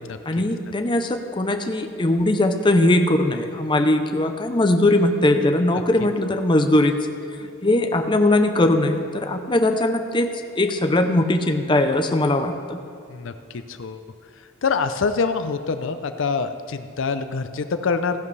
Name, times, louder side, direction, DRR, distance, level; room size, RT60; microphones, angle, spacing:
voice 1, 0.3-7.0 7.6-12.8, left 1 dB, 25° left, 6 dB, 0.6 m, -20 dB
voice 2, 13.1-14.0 14.6-18.2, left 5 dB, 70° left, 10 dB, 0.5 m, -25 dB
15.0 x 10.5 x 3.3 m, 2.4 s
head